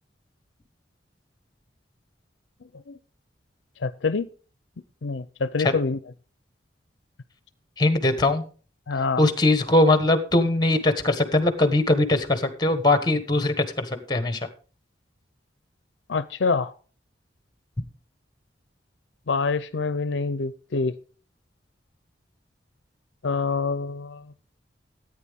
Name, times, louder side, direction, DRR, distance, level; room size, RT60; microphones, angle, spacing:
voice 1, 3.8-4.3 5.0-6.0 8.9-9.2 16.1-16.7 19.3-20.9 23.2-24.2, left 4 dB, 75° left, 14 dB, 0.6 m, -26 dB
voice 2, 7.8-8.4 9.2-14.5, left 2 dB, 25° left, 9 dB, 1.3 m, -21 dB
14.0 x 9.0 x 3.6 m, 0.37 s
head